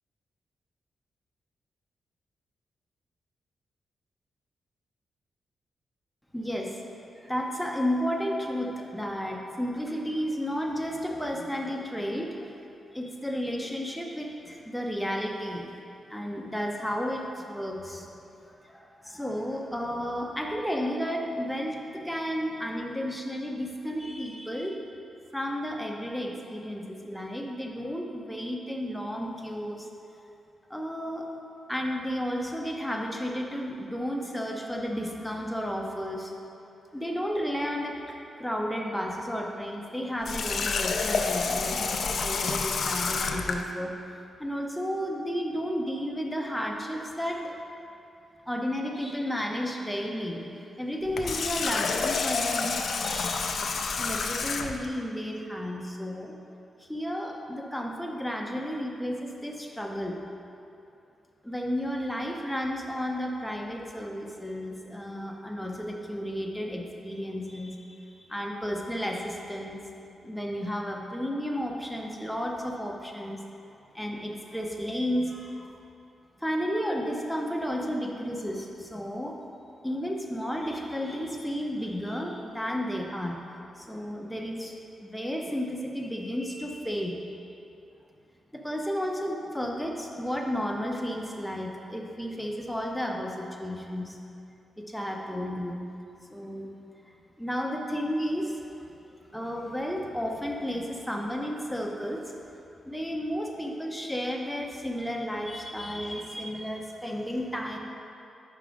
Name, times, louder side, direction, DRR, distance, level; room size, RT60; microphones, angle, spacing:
voice 1, 6.3-6.8 7.2-12.5 12.9-15.7 16.1-18.1 18.4-24.9 25.3-29.9 30.7-31.3 31.7-36.4 36.9-43.9 44.4-47.5 48.5-53.6 54.0-56.3 56.8-60.2 61.4-69.8 70.2-73.4 73.9-75.8 76.4-79.4 79.8-83.4 83.8-84.7 85.0-87.2 88.5-94.2 94.8-95.8 96.3-96.7 97.4-98.6 99.3-102.3 102.8-107.8, equal, ahead, 0 dB, 0.6 m, -32 dB
Water tap faucet, 40.2-43.6 51.0-54.9, left 4 dB, 60° left, 0.4 m, -29 dB
5.0 x 4.8 x 5.0 m, 2.7 s
wide cardioid pair, 120°, 0 cm